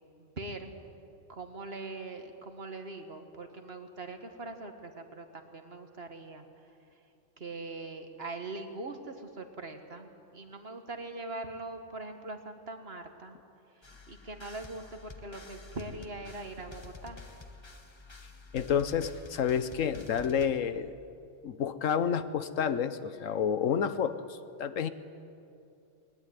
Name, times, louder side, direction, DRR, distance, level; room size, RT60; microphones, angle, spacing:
voice 1, 0.2-0.7 1.3-7.0 7.4-13.4 13.7-17.2, right 2 dB, 50° right, 6 dB, 2.0 m, -42 dB
sound 1, 13.8-20.5, left 3 dB, 20° left, 1.2 m, -49 dB
voice 2, 18.5-20.9 21.4-24.9, left 7 dB, 90° left, 12 dB, 1.3 m, -29 dB
20.0 x 20.0 x 9.6 m, 2.6 s
omnidirectional pair, 1.3 m